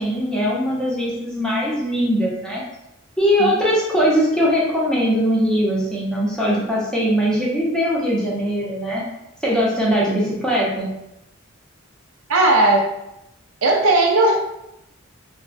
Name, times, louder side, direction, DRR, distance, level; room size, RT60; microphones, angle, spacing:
voice 1, 0.0-2.6 3.2-9.0 9.4-10.9, equal, 5° left, -6 dB, 0.6 m, -20 dB
voice 2, 12.3-12.9 13.6-14.4, right 2 dB, 85° right, 1 dB, 0.5 m, -16 dB
3.4 x 2.0 x 2.5 m, 0.86 s
head